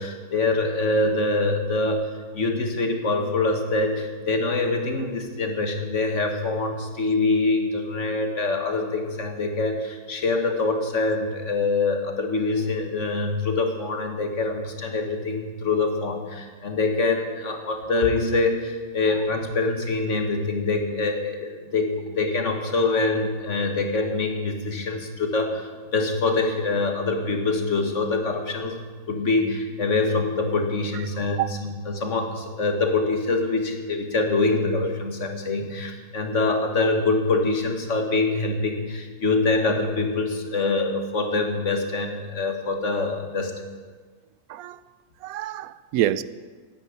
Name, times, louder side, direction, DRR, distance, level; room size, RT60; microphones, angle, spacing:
voice 1, 0.0-43.5, left 3 dB, 60° left, 4 dB, 1.9 m, -25 dB
voice 2, 45.2-46.2, right 13 dB, 90° right, 17 dB, 1.0 m, -26 dB
9.9 x 9.4 x 9.6 m, 1.5 s
omnidirectional pair, 1.5 m